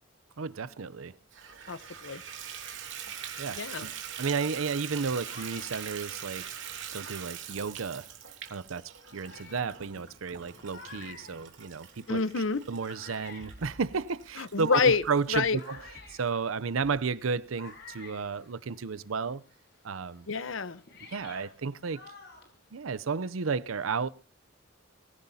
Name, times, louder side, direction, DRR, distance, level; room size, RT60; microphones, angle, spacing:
voice 1, 0.4-1.2 3.4-3.9 4.2-6.5 6.9-8.1 8.5-12.2 12.7-15.8 16.1-19.4 19.8-20.3 21.1-22.0 22.7-24.1, right 5 dB, 90° right, 0.6 m, -33 dB
Water tap faucet / Bathtub (filling or washing), 1.3-15.7 16.3-16.4 16.9-17.0 17.2-17.3, right 8 dB, 65° right, 3.0 m, -43 dB
voice 2, 1.7-2.2 3.5-3.9 12.1-12.6 14.4-15.0 15.3-15.6 20.3-20.8, left 4 dB, 70° left, 0.9 m, -27 dB
sound 1, 5.2-7.8 8.5-8.6 9.1-19.1 19.4-23.2, left 4 dB, 55° left, 4.7 m, -52 dB
sound 2, 13.4-14.5 14.9-16.2 16.8-17.0 17.6-17.7, equal, 45° right, 4.1 m, -53 dB
23.0 x 16.0 x 2.8 m
head